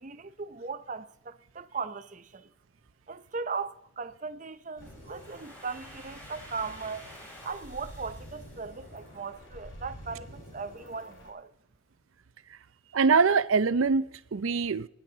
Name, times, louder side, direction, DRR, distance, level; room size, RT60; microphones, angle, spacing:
voice 1, 0.0-2.5 3.1-7.1 7.4-11.5, right 4 dB, 35° right, 0.6 m, -38 dB
sound 1, 4.8-11.3, equal, 70° left, 4.3 m, -48 dB
Domestic sounds home sounds, 4.8-9.6, equal, 10° left, 4.8 m, -51 dB
voice 2, 12.9-14.9, right 5 dB, 80° right, 0.6 m, -24 dB
28.5 x 10.5 x 3.9 m
head